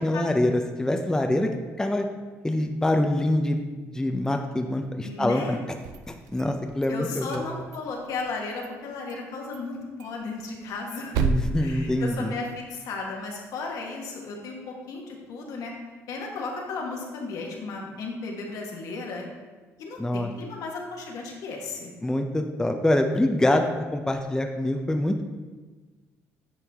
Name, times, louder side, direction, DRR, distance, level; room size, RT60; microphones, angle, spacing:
voice 1, 0.0-1.5 1.8-2.1 2.4-3.6 3.9-5.6 6.3-7.5 11.1-12.3 20.0-20.3 22.0-25.2, left 1 dB, 10° left, 4 dB, 0.5 m, -25 dB
voice 2, 5.0-5.6 6.9-11.2 11.5-15.7 16.1-19.3 19.8-21.9, left 3 dB, 70° left, 0 dB, 1.4 m, -35 dB
sound 1, 5.7-6.9 7.2-8.4 8.6-8.7 9.1-9.3 9.5-9.6 10.0-12.6, right 5 dB, 85° right, 0.4 m, -32 dB
8.7 x 4.5 x 3.5 m, 1.3 s
supercardioid pair, 75°, 6 cm